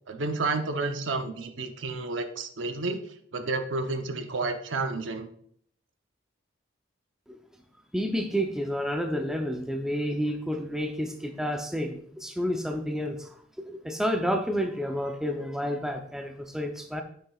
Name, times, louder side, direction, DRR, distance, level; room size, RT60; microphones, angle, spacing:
voice 1, 0.1-3.0 3.3-5.3, right 3 dB, 70° right, 6 dB, 0.8 m, -30 dB
voice 2, 7.9-13.3 13.6-17.0, equal, 5° right, 4 dB, 0.6 m, -30 dB
9.8 x 6.6 x 2.4 m, 0.64 s
head